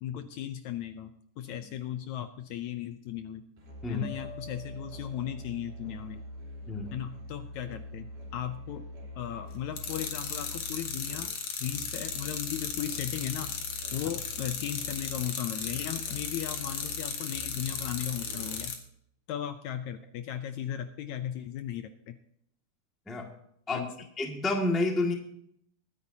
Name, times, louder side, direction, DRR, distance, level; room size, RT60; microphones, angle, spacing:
voice 1, 0.0-3.4 3.9-6.2 6.9-8.8 9.2-11.3 11.6-13.5 13.9-18.8 19.3-22.2 23.7-23.9, left 11 dB, 75° left, 9 dB, 1.8 m, -36 dB
Musical instrument, 3.6-18.9, equal, 85° right, 5.3 m, -45 dB
sound 1, 4.0-5.9, left 6 dB, 30° right, 3.2 m, -49 dB
voice 2, 6.7-7.0 23.1-23.3 23.7-23.9 24.2-25.1, left 2 dB, ahead, 1 dB, 0.9 m, -29 dB
sound 2, 9.8-18.8, left 6 dB, 55° left, 2.5 m, -36 dB
22.0 x 9.8 x 2.8 m, 0.71 s
omnidirectional pair, 3.7 m